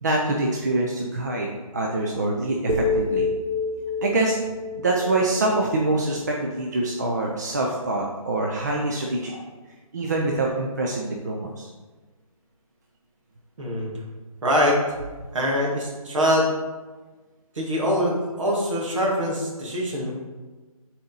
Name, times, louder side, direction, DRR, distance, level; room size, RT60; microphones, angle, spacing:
voice 1, 0.0-3.3 4.0-4.4 4.8-9.4 9.9-11.7, right 2 dB, 30° right, -1 dB, 0.4 m, -25 dB
sound 1, 2.7-6.8, left 3 dB, 85° right, 1.2 m, -28 dB
voice 2, 13.6-13.9 14.4-14.8 15.3-16.5 17.5-20.1, equal, 55° right, -2 dB, 1.9 m, -23 dB
6.9 x 4.1 x 3.9 m, 1.3 s
hypercardioid pair, 165°, 19 cm